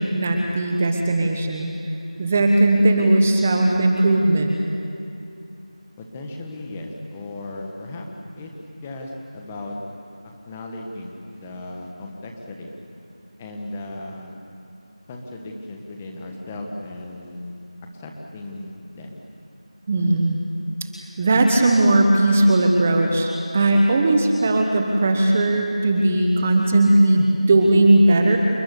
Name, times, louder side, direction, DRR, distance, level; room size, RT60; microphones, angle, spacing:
voice 1, 0.0-1.7 2.2-4.6 19.9-20.4 21.2-28.4, right 2 dB, 15° right, 3 dB, 1.2 m, -18 dB
voice 2, 6.0-8.1 8.3-8.5 8.8-9.8 10.4-12.7 13.4-14.3 15.1-17.6 17.9-19.2, left 2 dB, 10° left, 1 dB, 1.3 m, -36 dB
28.5 x 21.5 x 8.4 m, 2.7 s
figure-of-eight pair, 175°, 4 cm